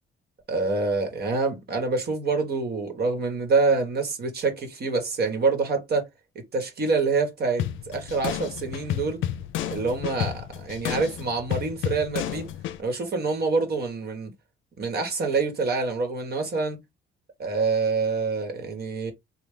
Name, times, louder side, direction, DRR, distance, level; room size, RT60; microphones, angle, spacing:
voice 1, 0.5-6.1 6.3-9.2 9.7-12.5 12.8-14.3 14.8-16.8 17.4-19.1, right 4 dB, 55° right, 1.2 m, -26 dB
sound 1, 7.6-12.8, left 11 dB, 80° left, 0.5 m, -31 dB
3.1 x 2.2 x 3.6 m
cardioid pair, 90°, 20 cm